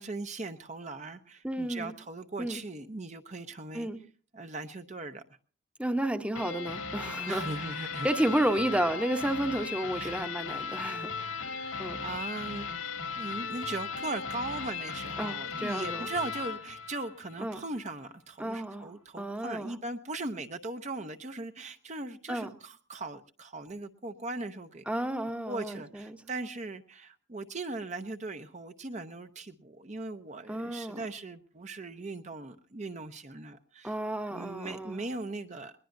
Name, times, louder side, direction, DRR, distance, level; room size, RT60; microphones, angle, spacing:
voice 1, 0.0-3.9 4.3-5.2 7.3-8.1 10.0-10.2 11.4-25.0 25.5-34.0 34.3-35.7, right 2 dB, 35° right, 7 dB, 0.7 m, -39 dB
voice 2, 1.4-1.9 2.4-2.6 3.7-4.0 5.8-11.5 11.8-12.0 15.2-16.1 17.4-17.6 18.4-19.7 22.3-22.5 24.9-26.2 30.5-31.0 33.8-35.0, right 1 dB, 5° right, 8 dB, 0.9 m, -32 dB
sound 1, 6.3-17.6, left 5 dB, 85° left, 2.6 m, -37 dB
21.0 x 20.5 x 2.6 m, 0.41 s
head